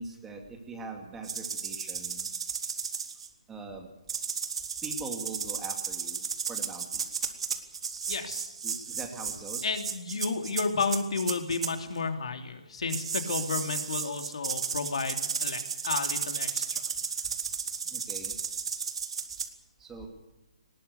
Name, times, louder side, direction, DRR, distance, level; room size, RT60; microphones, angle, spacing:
voice 1, 0.0-2.3 3.5-3.9 4.8-7.0 8.6-9.7 17.9-18.4 19.8-20.1, right 3 dB, 10° right, 3 dB, 2.3 m, -42 dB
sound 1, 1.2-3.3 4.1-11.7 12.9-19.5, right 6 dB, 60° right, 2.5 m, -34 dB
voice 2, 8.1-8.5 9.6-16.8, left 4 dB, 65° left, 6 dB, 3.0 m, -32 dB
19.5 x 18.5 x 8.2 m, 0.99 s
hypercardioid pair, 165°, 3 cm